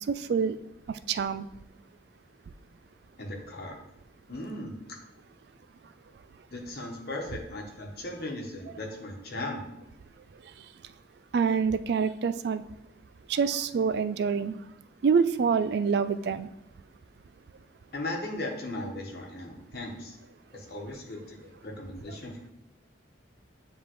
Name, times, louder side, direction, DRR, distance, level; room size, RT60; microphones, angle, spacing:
voice 1, 0.1-0.6 1.1-1.5 11.3-12.6 13.3-14.6 15.0-16.5, right 6 dB, 60° right, 14 dB, 0.3 m, -26 dB
voice 2, 3.2-3.7 4.3-4.8 6.5-9.7 17.9-20.2 20.5-22.5, left 1 dB, 55° left, 0 dB, 1.1 m, -37 dB
9.7 x 3.6 x 3.0 m, 0.89 s
head